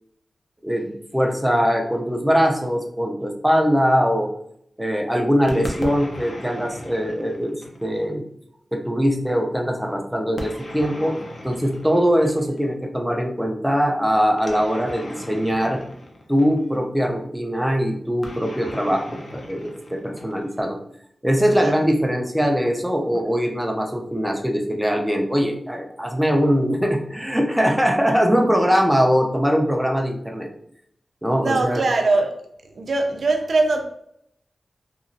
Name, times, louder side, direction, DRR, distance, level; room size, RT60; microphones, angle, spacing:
voice 1, 0.6-4.3 4.8-8.2 8.7-11.2 11.4-15.8 16.3-20.8 21.2-30.5 31.2-31.9, equal, 5° right, 0.5 m, -21 dB
sound 1, 5.5-8.1 10.4-12.7 14.4-16.8 18.2-20.7, left 1 dB, 65° left, 0.6 m, -37 dB
voice 2, 31.4-32.3 32.8-33.8, right 3 dB, 70° right, 0.5 m, -21 dB
2.9 x 2.4 x 2.6 m
wide cardioid pair, 80°, 0 cm